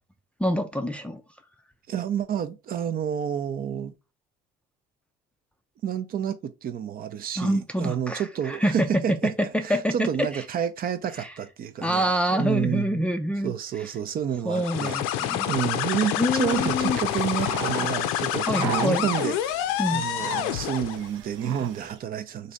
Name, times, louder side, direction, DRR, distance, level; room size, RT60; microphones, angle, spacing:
voice 1, 0.4-1.2 7.4-8.9 9.2-10.3 11.2-11.3 11.8-13.5 14.4-15.5 16.2-17.0 18.5-19.1 19.8-20.1, equal, 5° left, 0.4 m, -26 dB
voice 2, 1.9-3.9 5.8-9.3 9.6-13.0 13.4-19.4 19.9-22.5, right 8 dB, 45° right, 0.6 m, -30 dB
sound 1, 14.5-21.1, left 11 dB, 85° left, 0.5 m, -27 dB
sound 2, 16.4-22.0, right 8 dB, 75° right, 0.8 m, -37 dB
3.1 x 2.6 x 3.9 m
cardioid pair, 105°, 21 cm